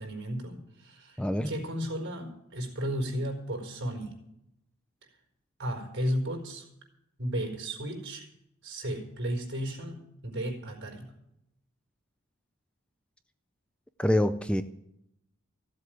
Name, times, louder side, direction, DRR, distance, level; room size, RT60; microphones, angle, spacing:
voice 1, 0.0-1.2 1.4-4.1 5.6-6.7 7.2-8.2 8.6-11.1, equal, 55° right, 1 dB, 4.5 m, -34 dB
voice 2, 1.2-1.5 14.0-14.6, left 1 dB, 5° left, 10 dB, 0.4 m, -25 dB
15.5 x 7.9 x 9.3 m, 0.81 s
head